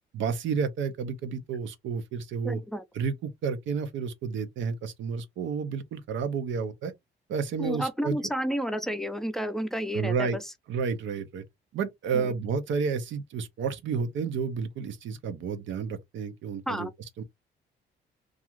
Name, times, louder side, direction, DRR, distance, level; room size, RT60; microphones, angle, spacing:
voice 1, 0.1-2.6 2.9-6.9 7.3-8.2 9.9-10.4 10.7-11.4 11.7-16.9 17.2-17.3, right 6 dB, 70° right, 0.5 m, -31 dB
voice 2, 2.4-2.8 7.6-10.4 12.1-12.3 16.7-16.9, equal, ahead, 0.5 m, -31 dB
2.4 x 2.4 x 2.9 m
cardioid pair, 90°, 20 cm